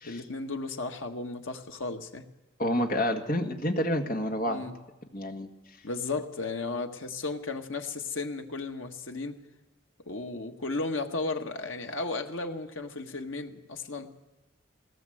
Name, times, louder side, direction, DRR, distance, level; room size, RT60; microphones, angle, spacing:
voice 1, 0.1-2.2 4.5-4.7 5.8-9.4 10.1-14.1, left 3 dB, 85° left, 4 dB, 1.7 m, -34 dB
voice 2, 2.6-4.7 5.1-5.5, left 1 dB, 45° left, 4 dB, 1.8 m, -29 dB
19.5 x 17.5 x 7.9 m, 1.0 s
head